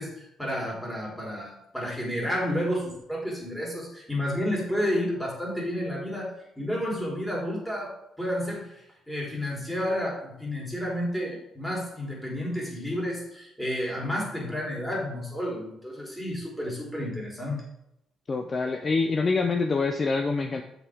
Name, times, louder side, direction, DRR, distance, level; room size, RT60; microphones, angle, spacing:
voice 1, 0.0-6.3 6.6-17.6, equal, 5° left, -3 dB, 3.6 m, -31 dB
voice 2, 18.3-20.6, left 4 dB, 35° left, 6 dB, 0.6 m, -25 dB
8.2 x 6.8 x 3.6 m, 0.80 s
cardioid pair, 90°, 0 cm